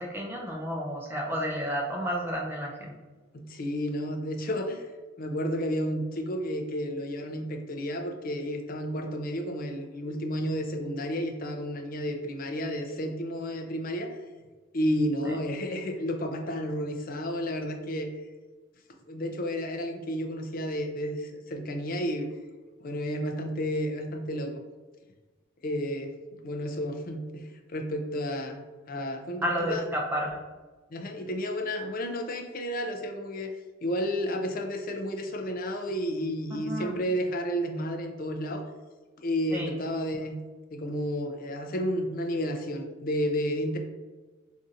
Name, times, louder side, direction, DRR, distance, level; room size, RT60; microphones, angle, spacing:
voice 1, 0.0-3.0 15.2-15.3 29.4-30.4 36.6-37.0 39.5-39.7, equal, 10° right, -1 dB, 0.5 m, -31 dB
voice 2, 3.3-4.8 5.2-14.2 14.7-18.1 19.0-22.3 22.8-24.6 25.6-29.8 30.9-33.5 33.8-38.7 39.2-40.4 40.7-43.8, equal, 45° left, 4 dB, 0.4 m, -31 dB
5.2 x 2.6 x 2.4 m, 1.3 s
head